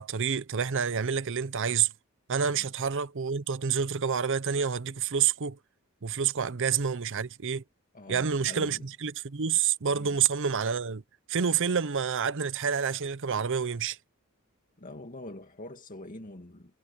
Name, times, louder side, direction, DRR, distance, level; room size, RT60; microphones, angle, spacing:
voice 1, 0.0-1.9 2.3-5.6 6.0-7.6 8.1-11.0 11.3-14.0, right 7 dB, 60° right, 0.7 m, -28 dB
voice 2, 7.9-8.9 9.9-10.2 14.8-16.8, left 1 dB, 40° left, 2.0 m, -45 dB
head